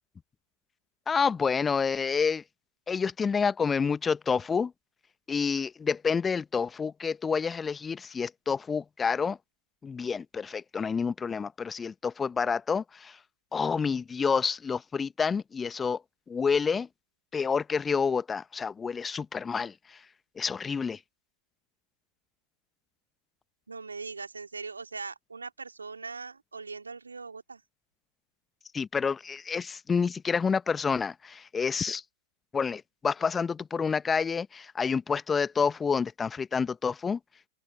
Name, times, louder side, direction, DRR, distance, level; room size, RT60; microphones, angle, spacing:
voice 1, 1.1-2.4 2.9-4.7 5.3-9.4 9.8-13.2 13.5-16.0 16.3-16.9 17.3-19.7 20.4-21.0 28.7-32.0 32.5-37.2, left 5 dB, 15° left, 1.3 m, -28 dB
voice 2, 23.7-27.6, right 4 dB, 75° right, 3.1 m, -40 dB
open air
figure-of-eight pair, 90°, 0 cm